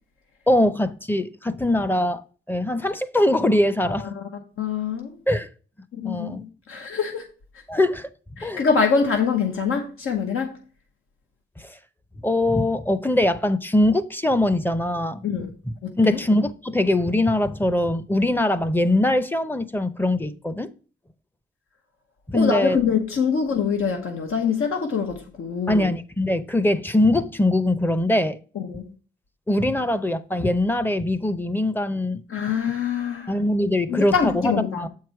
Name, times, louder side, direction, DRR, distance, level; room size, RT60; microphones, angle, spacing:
voice 1, 0.5-4.1 5.3-5.5 6.0-6.4 7.7-8.1 8.4-8.6 11.6-11.8 12.2-15.3 16.0-20.7 22.3-22.8 25.7-28.4 29.5-32.2 33.3-34.9, left 1 dB, 10° left, 0.5 m, -22 dB
voice 2, 3.8-4.2 4.6-5.2 5.9-7.3 8.4-10.6 15.2-15.5 15.8-16.2 22.3-25.9 28.5-28.9 32.3-33.3 33.9-34.9, left 6 dB, 90° left, 1.1 m, -24 dB
7.4 x 4.7 x 4.7 m
wide cardioid pair, 120°, 21 cm